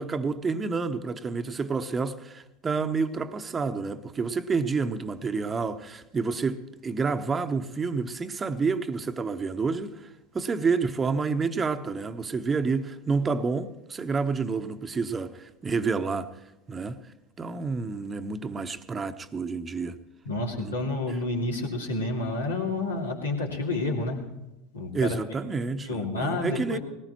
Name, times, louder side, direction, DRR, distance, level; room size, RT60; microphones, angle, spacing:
voice 1, 0.0-10.1 10.3-16.3 16.7-17.0 17.4-20.0 20.6-20.7 21.1-21.2 24.9-26.8, right 4 dB, 25° right, 0.9 m, -29 dB
voice 2, 20.2-24.2 24.7-25.2 25.8-26.8, left 2 dB, 85° left, 2.6 m, -29 dB
19.5 x 18.0 x 3.0 m
figure-of-eight pair, 80°, 0 cm